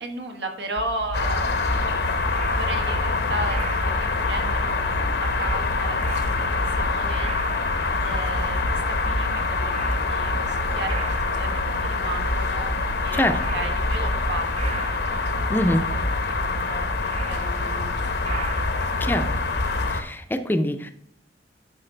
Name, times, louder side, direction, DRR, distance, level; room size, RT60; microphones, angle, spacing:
voice 1, 0.0-1.5 2.3-7.3 8.0-12.7 13.0-14.5 14.9-16.0 16.4-18.7, right 2 dB, 80° right, 3 dB, 1.4 m, -35 dB
sound 1, 0.8-19.4, right 3 dB, 35° right, 0.3 m, -35 dB
sound 2, 1.1-20.0, left 3 dB, 65° left, 0.9 m, -25 dB
voice 2, 15.5-15.9 19.0-19.4 19.9-20.9, left 1 dB, 10° left, 8 dB, 0.5 m, -24 dB
9.7 x 5.7 x 3.3 m, 0.69 s
head